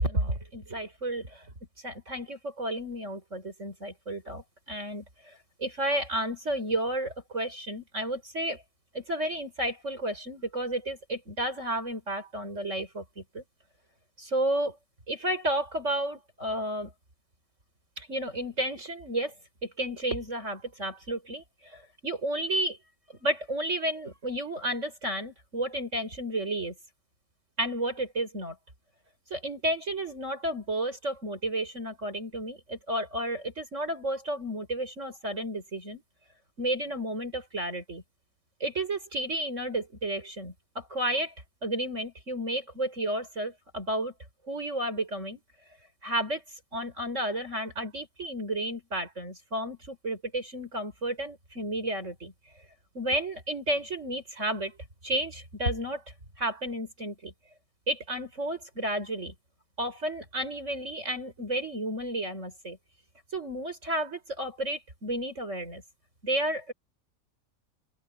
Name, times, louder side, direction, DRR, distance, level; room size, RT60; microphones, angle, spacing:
voice 1, 0.0-1.4 1.8-8.6 8.9-13.4 14.2-14.8 15.1-16.9 18.0-19.3 19.8-22.8 23.2-26.7 27.6-28.5 29.3-36.0 36.6-38.0 38.6-41.3 41.6-44.1 44.5-45.4 46.0-46.4 46.7-52.3 52.9-54.7 55.0-56.0 56.4-57.3 57.9-59.3 59.8-62.8 63.3-65.8 66.2-66.7, right 1 dB, 55° right, 5.8 m, -32 dB
omnidirectional pair, 1.5 m